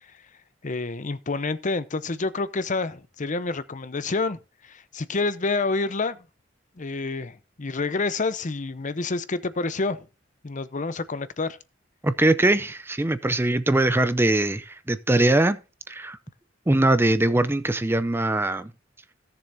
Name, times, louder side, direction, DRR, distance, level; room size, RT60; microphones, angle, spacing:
voice 1, 0.6-6.2 6.8-10.1 10.4-11.6, left 3 dB, 40° left, 0.7 m, -28 dB
voice 2, 12.0-15.6 15.9-16.2 16.7-18.7, right 2 dB, 10° right, 0.5 m, -21 dB
17.0 x 7.0 x 2.7 m
head